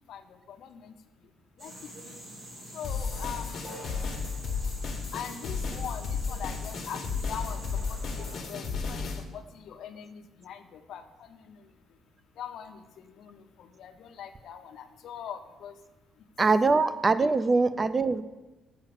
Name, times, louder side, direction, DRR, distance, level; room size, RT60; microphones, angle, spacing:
voice 1, 0.5-0.9 1.6-1.7 2.0-2.1 2.7-3.8 5.1-7.0 7.3-7.6 7.9-11.6 12.4-12.8 13.2-15.7 17.5-17.6, left 8 dB, 65° left, 7 dB, 0.7 m, -42 dB
sound 1, 1.6-8.4, equal, 40° right, 2.2 m, -45 dB
sound 2, 2.8-9.2, left 5 dB, 45° left, 1.2 m, -33 dB
voice 2, 16.4-18.2, right 3 dB, 20° right, 14 dB, 0.3 m, -23 dB
7.2 x 5.7 x 7.0 m, 1.1 s
cardioid pair, 155°, 0 cm